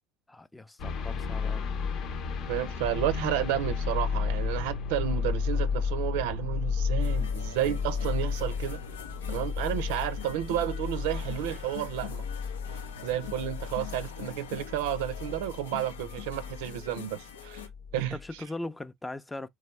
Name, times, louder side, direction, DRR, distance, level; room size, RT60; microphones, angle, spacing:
voice 1, 0.3-1.7 18.1-19.5, left 2 dB, 10° left, 0.5 m, -39 dB
sound 1, 0.8-17.0 17.4-18.3, left 5 dB, 55° left, 0.8 m, -33 dB
voice 2, 2.5-8.8 9.3-12.3 13.0-17.6 17.9-18.2, right 12 dB, 75° right, 0.5 m, -31 dB
sound 2, 7.0-17.7, left 8 dB, 90° left, 0.7 m, -44 dB
3.4 x 3.3 x 3.2 m
hypercardioid pair, 75°, 0 cm